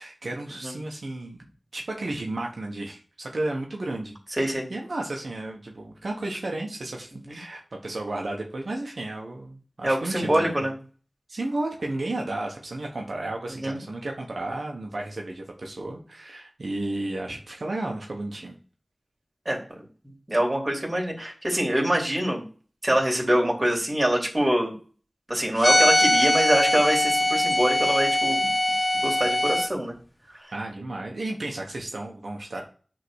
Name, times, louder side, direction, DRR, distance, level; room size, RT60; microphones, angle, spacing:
voice 1, 0.0-4.4 4.7-10.7 11.3-18.5 30.5-32.6, right 2 dB, 85° right, 1 dB, 1.2 m, -33 dB
voice 2, 4.4-4.7 7.3-7.4 9.8-10.7 13.6-13.8 19.4-19.6 20.3-22.4 22.8-24.7 25.3-28.5 28.9-29.9, right 1 dB, 30° right, 0 dB, 3.0 m, -24 dB
sound 1, 25.6-29.7, left 1 dB, 25° left, 0.8 m, -22 dB
8.2 x 3.8 x 6.4 m, 0.39 s
wide cardioid pair, 45°, 0 cm